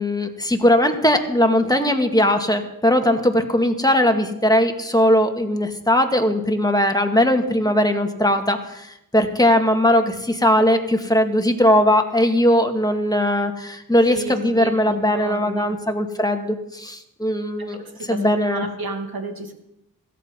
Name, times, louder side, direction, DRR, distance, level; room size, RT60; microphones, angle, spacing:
voice 1, 0.0-8.9 9.1-17.8 18.1-18.7, left 1 dB, 10° left, 4 dB, 2.1 m, -19 dB
voice 2, 14.1-15.8 17.6-19.5, right 3 dB, 85° right, 5 dB, 2.4 m, -32 dB
17.0 x 14.0 x 5.5 m, 0.82 s
cardioid pair, 55°, 36 cm